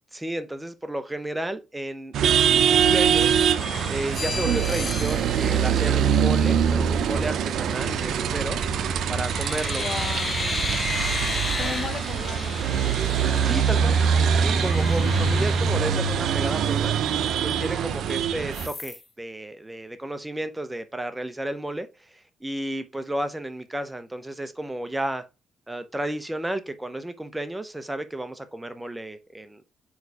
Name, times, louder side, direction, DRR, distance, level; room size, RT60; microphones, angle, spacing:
voice 1, 0.1-3.3 3.9-8.6 9.1-9.8 13.4-14.0 14.4-17.0 17.4-25.2 25.7-29.6, right 1 dB, 10° right, 0.8 m, -32 dB
sound 1, 2.1-18.7, right 7 dB, 70° right, 0.6 m, -23 dB
sound 2, 3.6-6.6 8.4-8.8 9.1-16.4 16.8-16.9 17.2-18.1 18.5-19.0, left 3 dB, 30° left, 1.1 m, -34 dB
voice 2, 9.7-10.6 11.3-12.6 15.1-15.5, left 5 dB, 55° left, 1.0 m, -36 dB
4.8 x 4.7 x 4.7 m
cardioid pair, 90°, 0 cm